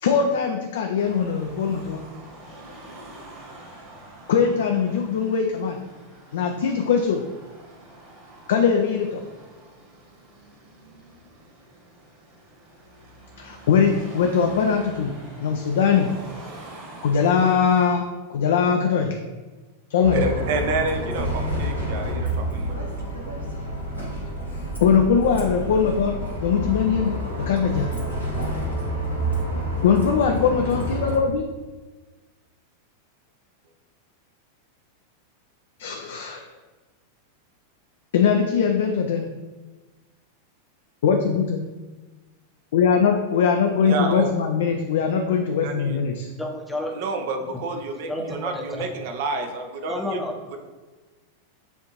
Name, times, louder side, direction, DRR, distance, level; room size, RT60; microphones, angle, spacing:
voice 1, 0.0-2.1 4.3-5.8 6.3-7.2 8.5-9.2 13.4-15.1 15.4-16.1 17.0-18.0 18.3-19.2 19.9-20.3 24.8-27.9 29.8-31.4 35.8-36.5 38.1-39.3 41.0-41.6 42.7-46.3, left 6 dB, 60° left, 3 dB, 0.4 m, -21 dB
Car passing by / Traffic noise roadway noise / Engine, 1.0-17.8, right 1 dB, 35° right, 1.4 m, -45 dB
Bus, 20.0-31.2, right 1 dB, 90° left, 1.1 m, -28 dB
voice 2, 20.1-22.8 43.8-44.3 45.6-46.0 46.9-50.2, right 3 dB, 50° right, 6 dB, 0.5 m, -29 dB
voice 3, 46.4-46.9 47.5-47.6 48.1-48.9 49.9-50.6, left 1 dB, ahead, 0 dB, 0.7 m, -31 dB
7.0 x 2.5 x 3.0 m, 1.2 s
figure-of-eight pair, 90°, 0 cm